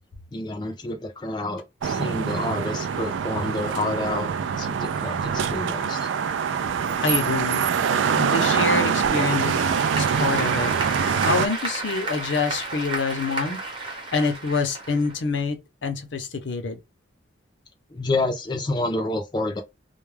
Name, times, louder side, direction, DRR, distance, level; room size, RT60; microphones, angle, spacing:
voice 1, 0.3-4.3 4.6-6.1 17.9-19.6, left 2 dB, 25° left, 0.4 m, -28 dB
sound 1, 1.8-11.5, right 7 dB, 80° right, 0.3 m, -24 dB
voice 2, 7.0-7.7 8.1-9.6 9.9-10.8 11.3-16.8, left 4 dB, 75° left, 0.6 m, -26 dB
Applause / Crowd, 8.8-15.4, right 3 dB, 25° right, 0.8 m, -33 dB
2.3 x 2.1 x 3.1 m
head